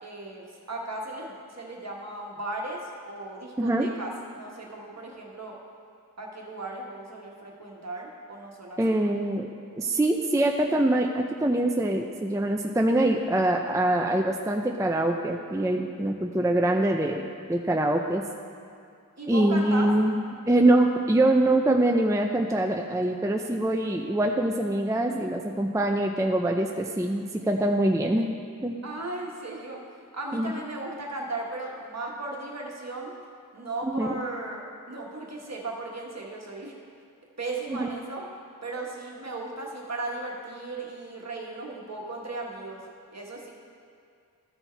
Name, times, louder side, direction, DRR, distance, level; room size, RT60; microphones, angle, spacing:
voice 1, 0.0-4.1 4.4-5.6 6.2-9.0 19.2-19.9 28.8-29.8 30.1-33.1 33.5-34.6 34.9-36.8 37.4-38.3 38.6-42.8 43.1-43.5, right 2 dB, 50° right, -1 dB, 1.4 m, -36 dB
voice 2, 3.6-3.9 8.8-17.2 17.5-18.2 19.3-20.2 20.5-28.3 28.6-28.8 30.3-30.5 33.8-34.1 37.7-37.9, right 1 dB, 10° right, 2 dB, 0.4 m, -24 dB
13.5 x 4.5 x 4.5 m, 2.4 s
wide cardioid pair, 65°, 34 cm